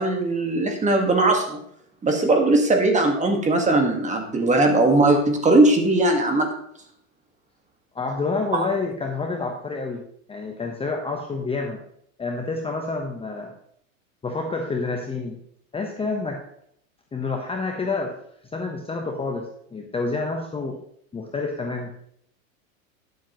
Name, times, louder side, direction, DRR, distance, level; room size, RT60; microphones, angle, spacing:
voice 1, 0.0-1.6 2.0-6.5 8.5-8.6, right 2 dB, 15° right, 4 dB, 1.6 m, -19 dB
voice 2, 7.9-10.0 10.3-11.8 12.2-13.5 14.2-15.3 15.7-16.4 17.1-18.2 18.5-20.8 21.1-22.1, left 3 dB, 15° left, 2 dB, 1.0 m, -28 dB
11.5 x 7.7 x 3.0 m, 0.69 s
supercardioid pair, 125°, 41 cm